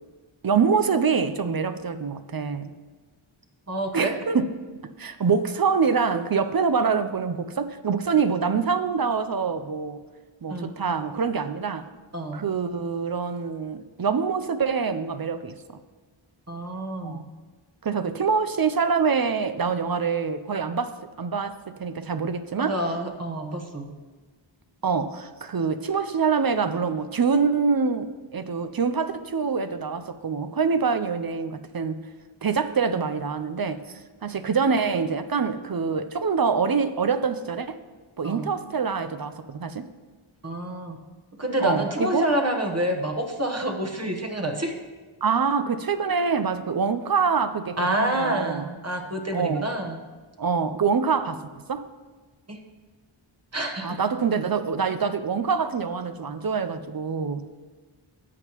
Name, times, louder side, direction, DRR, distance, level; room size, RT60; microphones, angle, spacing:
voice 1, 0.4-2.7 3.9-4.5 5.0-10.0 10.4-11.9 12.3-15.5 17.0-17.2 17.8-20.9 21.2-22.8 24.8-32.0 32.4-33.8 34.2-37.8 38.2-39.9 41.6-42.3 45.2-48.7 49.3-49.7 50.4-51.4 51.7-51.8 53.8-57.4, right 5 dB, 45° right, 11 dB, 0.5 m, -25 dB
voice 2, 3.7-4.2 10.5-10.9 12.1-12.4 16.5-17.3 22.6-23.9 38.2-38.5 40.4-41.0 41.4-44.7 47.8-50.0 52.5-52.6 53.5-54.0, right 1 dB, 30° right, 2 dB, 1.1 m, -28 dB
13.5 x 8.0 x 3.0 m, 1.4 s
wide cardioid pair, 70°, 49 cm